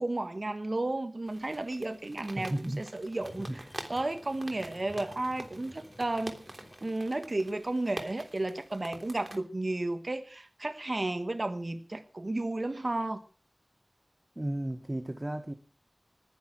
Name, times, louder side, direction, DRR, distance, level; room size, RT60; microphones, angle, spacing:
voice 1, 0.0-3.6 3.9-6.4 6.8-13.2, right 2 dB, 65° right, 1.3 m, -33 dB
sound 1, 1.3-9.4, right 1 dB, 50° right, 3.3 m, -47 dB
sound 2, 2.1-6.9, left 1 dB, 30° left, 3.7 m, -52 dB
voice 2, 2.3-2.9 3.4-3.6 14.3-15.5, right 1 dB, 30° right, 1.4 m, -34 dB
20.0 x 10.5 x 6.1 m
wide cardioid pair, 50°, 0 cm